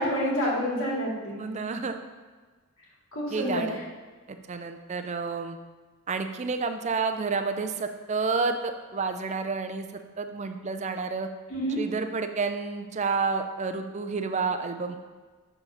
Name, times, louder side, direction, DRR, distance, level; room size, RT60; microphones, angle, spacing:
voice 1, 0.0-1.4 3.1-3.6 11.5-11.8, equal, 70° left, -5 dB, 2.3 m, -28 dB
voice 2, 1.4-2.0 3.3-3.8 4.3-5.6 6.1-9.9 10.2-11.3 11.8-15.0, right 4 dB, 30° right, 7 dB, 0.4 m, -30 dB
7.0 x 4.0 x 5.6 m, 1.4 s
head